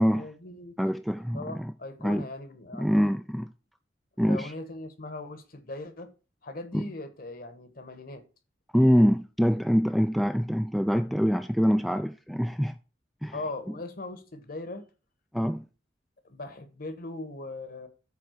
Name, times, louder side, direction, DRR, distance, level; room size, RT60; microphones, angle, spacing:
voice 1, 0.0-0.8 1.3-3.0 4.3-6.1 6.4-8.2 13.3-14.9 16.2-17.9, left 2 dB, 50° left, 1.3 m, -39 dB
voice 2, 0.8-1.7 2.0-2.3 2.7-3.5 4.2-4.5 6.7-6.8 8.7-12.8 13.2-13.4 15.3-15.6, equal, ahead, 0.4 m, -24 dB
8.8 x 3.6 x 6.5 m
head